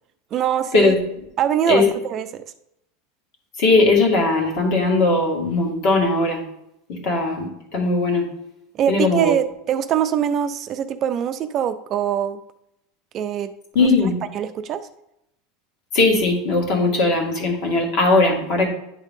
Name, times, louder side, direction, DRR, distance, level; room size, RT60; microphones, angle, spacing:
voice 1, 0.3-0.9 1.4-2.4 8.7-12.4 13.1-13.5 13.8-13.9 14.3-14.8, right 9 dB, 30° right, 10 dB, 0.4 m, -23 dB
voice 2, 3.6-6.4 6.9-8.3 8.9-9.3 13.7-14.1 15.9-18.7, left 3 dB, 50° left, 1 dB, 2.1 m, -19 dB
10.5 x 3.6 x 3.7 m, 0.81 s
supercardioid pair, 160°, 0 cm